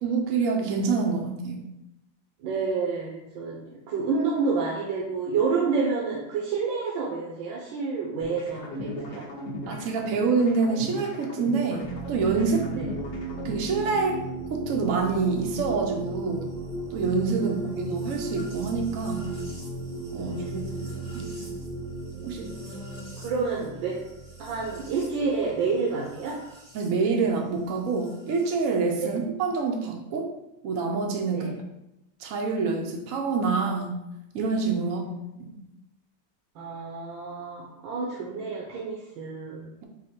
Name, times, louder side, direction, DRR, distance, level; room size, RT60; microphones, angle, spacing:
voice 1, 0.0-1.6 9.7-12.7 13.4-14.2 14.5-16.5 16.9-19.3 20.1-20.6 21.1-21.3 22.2-22.5 26.7-30.3 30.6-31.5 32.2-34.0 34.3-35.1 35.4-35.5, right 4 dB, 70° right, 1 dB, 0.8 m, -26 dB
voice 2, 2.4-9.2 12.8-12.9 17.3-17.7 20.1-20.9 21.3-21.6 22.1-24.0 24.4-26.4 29.0-29.2 31.3-31.5 34.8-35.2 35.5-35.6 36.5-39.6, right 4 dB, 85° right, -4 dB, 1.5 m, -30 dB
sound 1, 8.2-14.2, left 1 dB, 55° left, 0.8 m, -38 dB
sound 2, 11.8-26.9 28.0-28.7, right 2 dB, 30° right, 0.6 m, -36 dB
4.9 x 2.1 x 4.3 m, 0.89 s
omnidirectional pair, 2.1 m